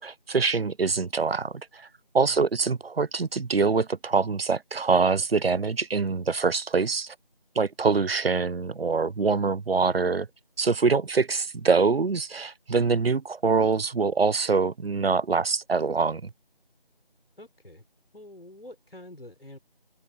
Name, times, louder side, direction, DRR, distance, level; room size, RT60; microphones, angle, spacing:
voice 1, 0.0-1.9 2.1-7.1 7.6-10.3 10.6-16.3, right 4 dB, 75° right, 0.7 m, -24 dB
voice 2, 17.4-17.8 18.1-19.6, left 1 dB, 75° left, 4.9 m, -46 dB
open air
figure-of-eight pair, 175°, 30 cm